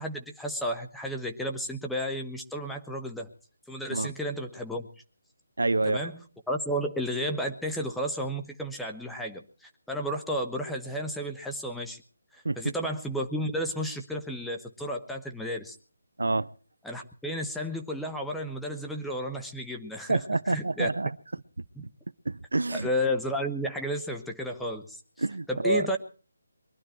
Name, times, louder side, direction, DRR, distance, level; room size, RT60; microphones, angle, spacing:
voice 1, 0.0-3.3 3.7-4.9 5.9-6.2 6.5-12.0 12.3-15.8 16.8-20.2 20.5-20.9 21.8-21.9 22.7-25.0 25.5-26.0, equal, ahead, 1.2 m, -32 dB
voice 2, 5.6-6.1 12.4-12.6 16.2-16.5 20.1-21.1 22.3-22.9 25.2-25.9, right 2 dB, 85° right, 0.7 m, -27 dB
23.0 x 12.0 x 4.6 m
figure-of-eight pair, 160°, 0 cm